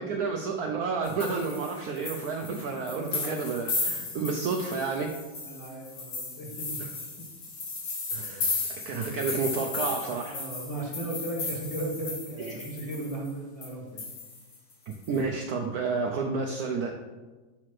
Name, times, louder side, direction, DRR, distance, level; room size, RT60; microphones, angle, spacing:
voice 1, 0.0-5.2 6.8-6.9 8.1-10.4 12.4-12.6 15.1-16.9, right 4 dB, 85° right, 2 dB, 0.8 m, -31 dB
sound 1, 1.0-13.3 13.6-13.7 14.0-15.2, left 3 dB, 70° left, 2.1 m, -35 dB
voice 2, 2.9-3.5 5.4-6.9 7.2-7.3 8.1-9.2 10.3-14.1 15.1-15.2, right 1 dB, 20° left, -4 dB, 1.3 m, -37 dB
7.4 x 3.2 x 5.7 m, 1.2 s
omnidirectional pair, 2.2 m